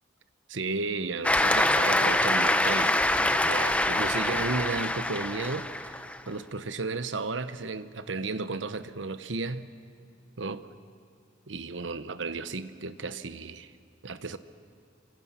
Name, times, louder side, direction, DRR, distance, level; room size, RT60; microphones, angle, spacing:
voice 1, 0.5-6.0 6.3-9.7 10.4-10.7 11.5-13.7 14.0-14.4, right 3 dB, 80° right, 1.0 m, -34 dB
Cheering / Applause, 1.2-6.2, left 1 dB, 5° left, 0.6 m, -25 dB
28.5 x 25.0 x 5.8 m
head